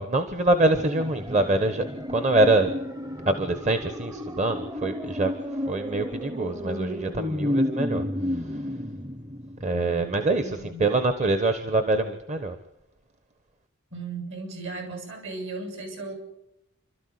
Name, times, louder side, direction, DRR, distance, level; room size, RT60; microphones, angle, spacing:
voice 1, 0.0-2.7 3.3-8.7 9.6-12.6, right 2 dB, 35° right, 8 dB, 1.3 m, -25 dB
sound 1, 0.8-9.9 10.2-10.3, left 1 dB, 15° right, 0.9 m, -32 dB
voice 2, 9.7-10.1 10.4-10.9 13.9-16.2, right 3 dB, 60° right, 5 dB, 6.8 m, -36 dB
28.0 x 13.0 x 9.6 m, 0.85 s
head